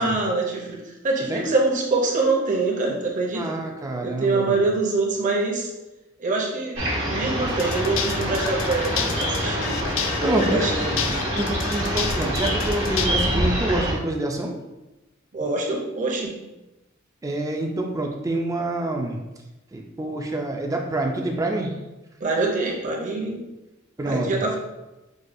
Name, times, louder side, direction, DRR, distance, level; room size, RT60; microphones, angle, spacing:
voice 1, 0.0-3.6 4.0-5.7 6.2-6.8 7.1-9.9 10.4-11.2 15.3-16.3 22.2-23.4 24.1-24.6, right 3 dB, 40° right, -1 dB, 0.8 m, -25 dB
voice 2, 3.3-4.6 10.2-10.6 11.3-14.5 17.2-19.2 19.7-21.8 24.0-24.4, right 1 dB, 15° right, 2 dB, 0.4 m, -27 dB
sound 1, 6.7-13.9, equal, 75° right, 1.2 m, -26 dB
sound 2, 7.5-13.1, left 7 dB, 70° left, 0.4 m, -31 dB
6.1 x 2.3 x 2.6 m, 1.0 s
head